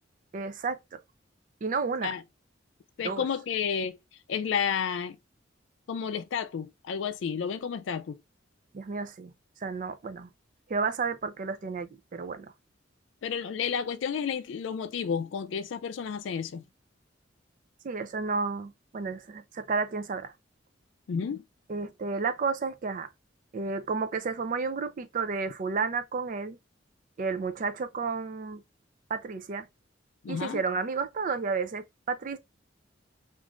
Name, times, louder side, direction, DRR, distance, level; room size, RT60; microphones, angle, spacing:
voice 1, 0.3-1.0 1.6-2.1 3.0-3.3 8.7-9.3 9.6-10.3 10.7-12.5 17.8-20.3 21.7-23.1 23.5-26.6 27.2-28.6 29.1-29.7 30.3-32.4, right 4 dB, 45° right, 0.4 m, -32 dB
voice 2, 3.0-4.0 4.3-5.2 5.9-8.2 13.2-16.6 21.1-21.4 30.2-30.6, left 7 dB, 80° left, 0.4 m, -31 dB
2.5 x 2.4 x 2.9 m
head